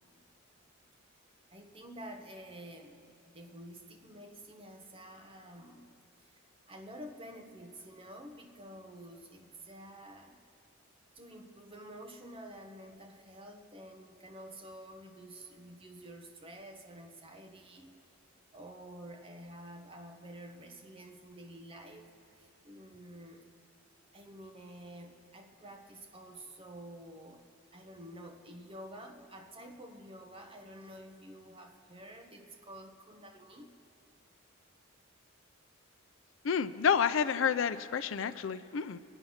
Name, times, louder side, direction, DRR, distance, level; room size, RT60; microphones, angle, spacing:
voice 1, 1.5-5.9 6.2-10.4 11.1-17.9 18.5-23.5 24.1-27.4 27.7-33.7, right 1 dB, 30° right, 3 dB, 1.1 m, -50 dB
voice 2, 36.4-39.0, left 7 dB, 70° left, 12 dB, 0.5 m, -29 dB
24.0 x 9.0 x 5.7 m, 2.6 s
head